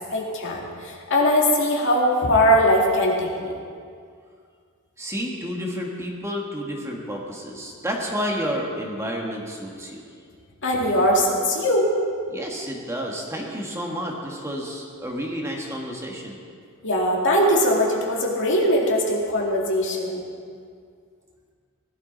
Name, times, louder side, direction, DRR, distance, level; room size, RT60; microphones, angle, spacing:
voice 1, 0.1-3.6 10.6-11.9 16.8-20.3, equal, 55° left, -2 dB, 2.2 m, -21 dB
voice 2, 5.0-10.0 12.3-16.4, equal, 15° right, -1 dB, 1.5 m, -30 dB
18.5 x 12.0 x 4.0 m, 2.2 s
head